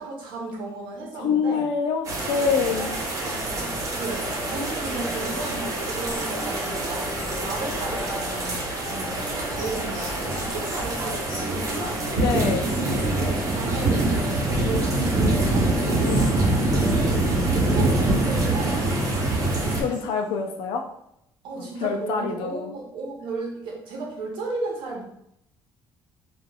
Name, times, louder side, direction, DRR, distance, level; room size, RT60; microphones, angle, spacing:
voice 1, 0.0-1.6 3.5-12.1 13.2-18.9 21.4-25.0, right 3 dB, 80° right, -1 dB, 0.9 m, -34 dB
voice 2, 1.2-3.0 11.7-12.7 16.0-16.7 18.7-19.4 19.8-20.8 21.6-22.7, left 6 dB, 85° left, 4 dB, 0.4 m, -27 dB
sound 1, 2.0-19.8, right 2 dB, 40° right, 0.8 m, -25 dB
sound 2, 4.2-20.6, left 1 dB, 60° left, 1.0 m, -40 dB
3.2 x 2.3 x 2.3 m, 0.76 s
cardioid pair, 105°, 8 cm